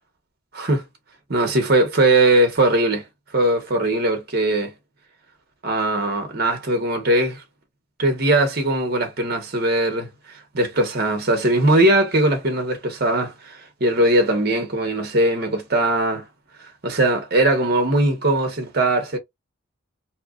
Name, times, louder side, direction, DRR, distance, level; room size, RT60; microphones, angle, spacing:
voice 1, 0.5-0.8 1.3-3.0 3.3-4.7 5.6-7.4 8.0-16.3 16.6-19.2, right 1 dB, 55° right, 1.0 m, -20 dB
2.8 x 2.4 x 2.4 m
head